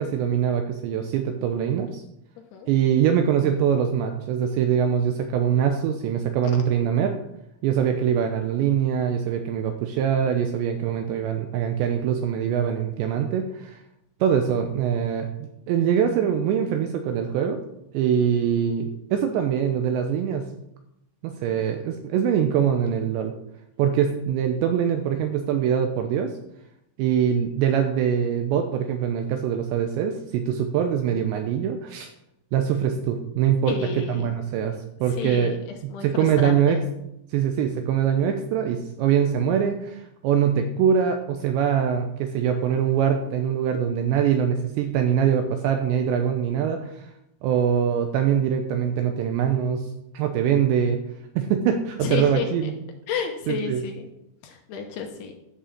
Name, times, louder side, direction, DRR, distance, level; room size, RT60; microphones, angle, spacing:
voice 1, 0.0-2.0 2.7-7.1 7.6-13.8 14.2-15.3 15.7-17.6 17.9-20.5 21.2-23.3 23.8-26.3 27.0-32.1 32.5-36.8 37.3-47.1 47.4-49.9 50.1-51.0 51.4-52.8 53.5-53.8, right 8 dB, 85° right, 5 dB, 2.6 m, -23 dB
voice 2, 33.7-34.4 35.1-36.8 52.0-52.7 53.1-54.1 54.4-55.3, left 6 dB, 75° left, 3 dB, 2.5 m, -31 dB
11.5 x 5.7 x 7.3 m, 0.82 s
omnidirectional pair, 5.9 m